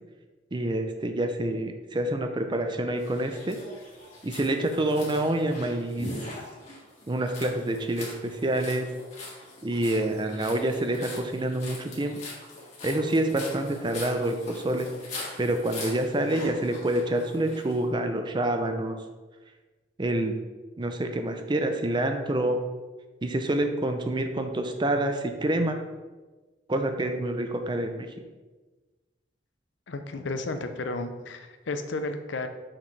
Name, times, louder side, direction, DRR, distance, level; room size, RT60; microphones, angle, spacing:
voice 1, 0.5-3.6 4.2-6.3 7.1-8.9 9.6-12.2 12.8-14.9 15.4-19.0 20.0-20.3 20.8-22.6 23.2-25.8 26.7-28.1, right 1 dB, 25° right, 6 dB, 0.5 m, -27 dB
sound 1, 3.0-17.8, left 2 dB, 40° left, 1.8 m, -42 dB
voice 2, 29.9-32.5, left 2 dB, 75° left, 7 dB, 0.6 m, -33 dB
6.3 x 5.9 x 3.2 m, 1.3 s
head